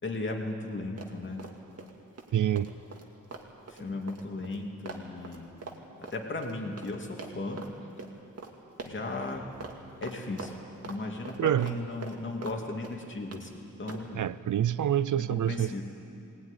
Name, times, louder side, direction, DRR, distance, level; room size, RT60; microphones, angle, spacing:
voice 1, 0.0-1.5 3.7-5.5 6.0-7.7 8.8-9.5 10.0-10.6 10.8-14.2 15.2-15.8, left 2 dB, 40° left, 1 dB, 2.6 m, -36 dB
Run, 1.0-1.9 2.2-6.9 7.2-7.7 8.0-8.1 8.4-8.5 8.8-9.3 9.6-9.8 10.0-11.0 11.3-12.6 12.8-13.4 13.9-14.1, right 4 dB, 50° right, 2.3 m, -43 dB
voice 2, 2.3-2.7 11.4-11.7 14.1-15.8, right 10 dB, 75° right, 16 dB, 0.6 m, -27 dB
20.0 x 19.5 x 10.0 m, 2.7 s
wide cardioid pair, 145°, 31 cm